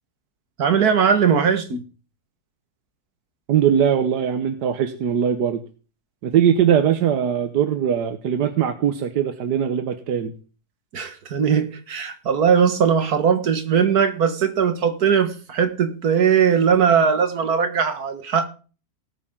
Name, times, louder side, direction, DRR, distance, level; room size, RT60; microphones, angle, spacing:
voice 1, 0.6-1.8 10.9-18.5, right 7 dB, 70° right, 8 dB, 2.0 m, -19 dB
voice 2, 3.5-5.6 6.2-10.3, right 9 dB, 90° right, 9 dB, 1.6 m, -20 dB
19.0 x 8.5 x 3.8 m, 0.36 s
omnidirectional pair, 1.7 m